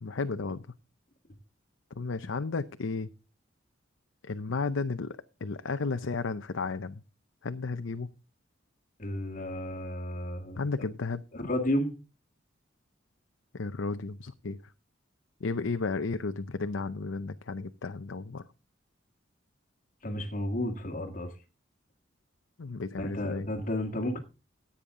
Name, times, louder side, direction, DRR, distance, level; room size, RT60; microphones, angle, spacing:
voice 1, 0.0-0.7 2.0-3.1 4.2-7.0 7.4-8.1 10.6-11.5 13.5-14.6 15.4-18.4 22.6-23.5, left 4 dB, 85° left, 10 dB, 0.7 m, -33 dB
voice 2, 9.0-10.6 11.3-11.9 20.0-21.3 23.0-24.2, left 1 dB, 45° left, 3 dB, 1.8 m, -32 dB
15.5 x 8.9 x 3.7 m, 0.31 s
head